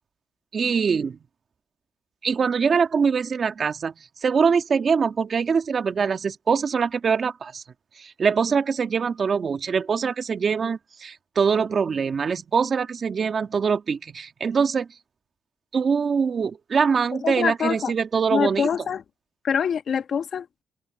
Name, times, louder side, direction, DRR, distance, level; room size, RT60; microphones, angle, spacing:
voice 1, 0.5-1.2 2.2-3.9 4.2-7.6 8.0-14.9 15.7-18.7, right 6 dB, 45° right, 1.8 m, -23 dB
voice 2, 17.2-17.9 18.3-19.0 19.4-20.5, left 7 dB, 55° left, 1.3 m, -25 dB
open air
cardioid pair, 90°, 0 cm